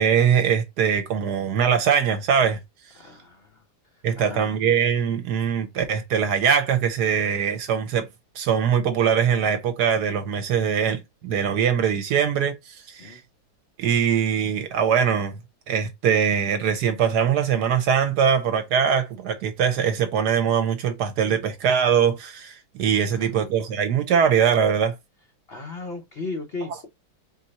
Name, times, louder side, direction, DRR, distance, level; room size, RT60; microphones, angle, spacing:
voice 1, 0.0-2.6 4.0-8.1 8.4-13.2 13.8-15.4 15.7-24.9, right 7 dB, 65° right, 1.1 m, -22 dB
voice 2, 2.9-3.6 4.2-4.5 13.0-13.2 23.1-23.3 25.5-26.9, left 3 dB, 75° left, 0.5 m, -36 dB
4.4 x 2.7 x 4.1 m
omnidirectional pair, 2.2 m